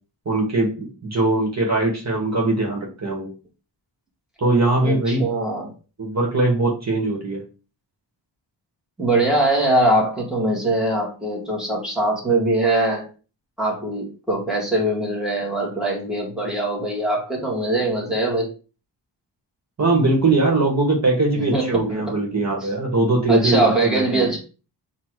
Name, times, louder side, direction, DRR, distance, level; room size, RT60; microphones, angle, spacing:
voice 1, 0.3-3.3 4.4-5.3 6.0-7.4 19.8-24.3, right 2 dB, 40° right, 0 dB, 1.8 m, -21 dB
voice 2, 4.8-5.7 9.0-13.1 13.6-18.5 21.4-22.0 22.6-22.7 23.3-24.4, right 2 dB, ahead, -3 dB, 1.9 m, -22 dB
7.1 x 2.8 x 4.7 m, 0.34 s
wide cardioid pair, 140°, 42 cm